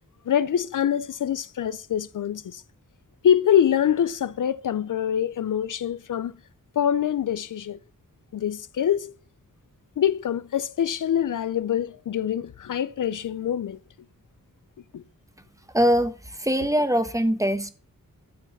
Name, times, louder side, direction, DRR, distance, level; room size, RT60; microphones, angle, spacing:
voice 1, 0.3-2.6 3.2-6.3 6.8-7.8 8.3-9.1 10.0-13.8 14.9-15.0, left 9 dB, 70° left, 0.5 m, -24 dB
voice 2, 15.7-17.7, equal, 10° right, 1.1 m, -22 dB
12.5 x 4.7 x 7.1 m
wide cardioid pair, 115°, 33 cm